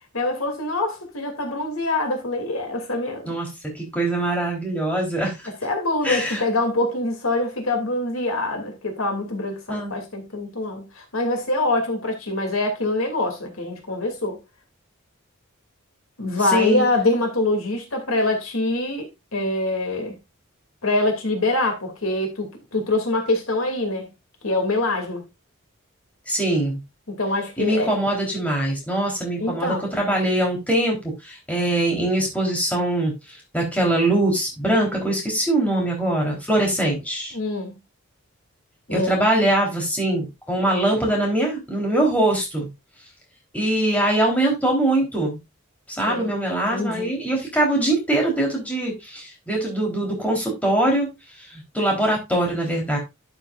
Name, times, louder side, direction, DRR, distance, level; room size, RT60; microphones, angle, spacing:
voice 1, 0.1-3.3 5.6-14.4 16.2-20.1 20.8-24.1 24.4-25.2 27.1-28.0 29.4-29.9 37.3-37.8 38.9-39.2 46.1-46.3 46.7-47.1, left 2 dB, 85° left, 2.6 m, -24 dB
voice 2, 3.7-5.4 6.0-6.4 9.7-9.9 16.5-16.8 26.3-26.8 27.6-31.0 31.2-33.1 33.5-37.3 38.9-42.7 43.5-45.4 46.0-51.1 51.5-53.0, right 1 dB, 5° left, 3.7 m, -22 dB
11.5 x 7.2 x 2.5 m
head